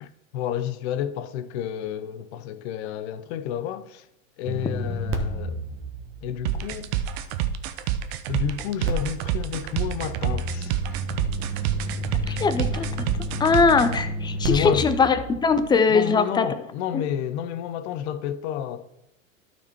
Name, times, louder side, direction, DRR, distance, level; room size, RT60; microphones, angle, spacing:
voice 1, 0.0-4.1 4.4-5.6 6.2-6.9 8.3-11.0 14.4-14.9 15.9-18.8, left 9 dB, 50° left, 0.8 m, -30 dB
sound 1, 4.5-7.6 8.8-15.8, equal, 30° right, 1.3 m, -32 dB
sound 2, 6.5-14.0, right 11 dB, 50° right, 0.8 m, -27 dB
voice 2, 12.3-12.9 13.4-16.5 16.9-17.0, left 4 dB, 10° left, 0.5 m, -21 dB
12.0 x 4.5 x 4.4 m
hypercardioid pair, 105°, 41 cm